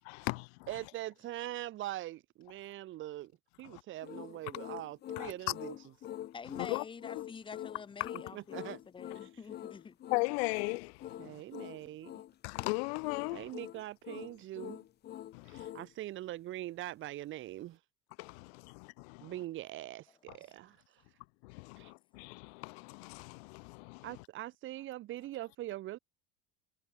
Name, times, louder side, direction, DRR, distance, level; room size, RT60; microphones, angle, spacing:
voice 1, 0.1-0.5 3.7-3.8 5.2-5.3 6.5-6.8 8.0-8.1 10.1-11.4 12.4-13.5 15.3-15.7 18.2-19.3 21.4-23.4, left 30 dB, 75° left, 3.0 m, -37 dB
voice 2, 0.7-3.3 3.6-5.8 8.1-8.8 9.2-9.3 11.2-12.1 13.3-14.8 15.5-17.8 19.2-21.0 21.8-21.9 24.0-26.0, right 15 dB, 40° right, 3.9 m, -42 dB
sound 1, 4.0-15.9, left 12 dB, 30° left, 3.9 m, -45 dB
voice 3, 6.3-10.0 11.8-11.9, left 5 dB, 15° left, 3.8 m, -47 dB
cardioid pair, 170°, 31 cm